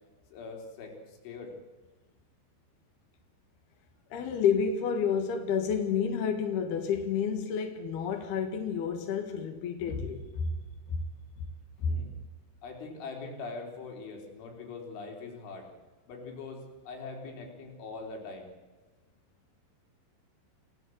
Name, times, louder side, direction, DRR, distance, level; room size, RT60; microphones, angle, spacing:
voice 1, 0.3-1.5 11.9-12.1 12.6-15.7 16.1-18.5, left 3 dB, 80° left, 6.3 m, -42 dB
voice 2, 4.1-10.5 10.9-11.0 11.4-11.5 11.8-12.0, left 6 dB, 65° left, 3.5 m, -30 dB
29.0 x 18.0 x 7.9 m
omnidirectional pair, 5.4 m